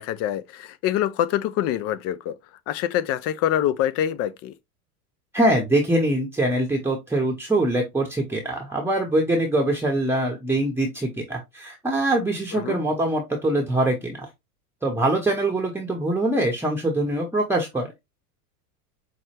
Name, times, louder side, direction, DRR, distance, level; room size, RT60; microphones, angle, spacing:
voice 1, 0.0-2.4 2.7-4.5 12.5-12.8, left 11 dB, 35° left, 0.4 m, -25 dB
voice 2, 5.3-14.3 14.8-17.9, right 1 dB, 5° right, 0.8 m, -23 dB
5.5 x 2.2 x 3.2 m
hypercardioid pair, 100°, 47 cm